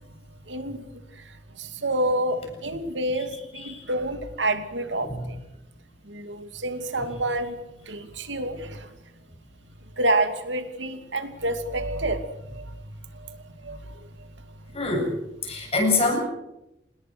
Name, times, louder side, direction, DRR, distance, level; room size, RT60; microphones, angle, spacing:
voice 1, 0.5-0.8 1.6-5.4 6.1-7.6 7.9-8.9 10.0-12.7 13.2-13.4 13.6-13.9, right 1 dB, 85° right, 8 dB, 2.7 m, -28 dB
voice 2, 14.7-15.2 15.4-16.2, left 2 dB, 35° left, 2 dB, 7.6 m, -24 dB
27.0 x 20.0 x 6.3 m, 0.87 s
head